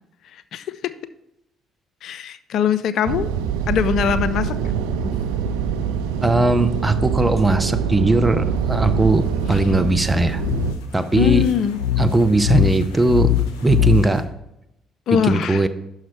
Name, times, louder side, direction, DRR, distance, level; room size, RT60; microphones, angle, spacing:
voice 1, 0.3-0.8 2.0-3.3 3.7-4.5 5.0-5.1 9.5-9.6 11.1-11.8 15.1-15.6, left 8 dB, 60° left, 13 dB, 0.4 m, -22 dB
sound 1, 3.0-10.7, right 7 dB, 75° right, 0.3 m, -24 dB
voice 2, 6.2-10.4 10.9-11.5 12.0-13.3 13.6-14.2 15.1-15.7, right 2 dB, 15° right, 9 dB, 0.7 m, -19 dB
sound 2, 10.3-14.2, left 10 dB, 80° left, 0.8 m, -22 dB
6.1 x 5.6 x 4.5 m, 0.84 s
hypercardioid pair, 50°, 0 cm